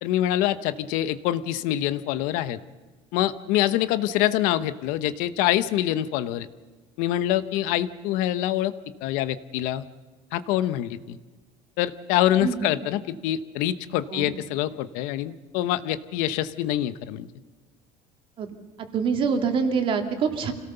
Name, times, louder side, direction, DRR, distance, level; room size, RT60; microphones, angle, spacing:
voice 1, 0.0-2.6 3.1-6.5 7.0-8.7 9.0-9.8 10.3-11.2 11.8-17.3, left 13 dB, 75° left, 13 dB, 1.0 m, -25 dB
voice 2, 12.4-12.7 14.1-14.2 18.4-18.5 18.8-20.5, right 6 dB, 40° right, 5 dB, 2.4 m, -25 dB
26.5 x 17.5 x 6.9 m, 1.4 s
cardioid pair, 155°, 14 cm